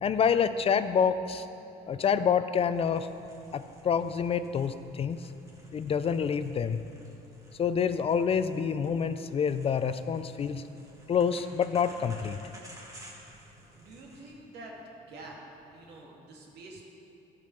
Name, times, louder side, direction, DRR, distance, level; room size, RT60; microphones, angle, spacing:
voice 1, 0.0-1.5 1.9-3.1 3.5-5.3 5.7-6.8 7.6-10.6 11.1-12.4, left 7 dB, 35° left, 12 dB, 0.4 m, -27 dB
sound 1, 2.8-14.3, right 1 dB, 20° right, 1.7 m, -54 dB
voice 2, 13.7-14.8 15.1-15.4 15.7-16.8, right 2 dB, 80° right, -1 dB, 1.8 m, -47 dB
12.0 x 5.3 x 5.6 m, 2.9 s
cardioid pair, 110°, 17 cm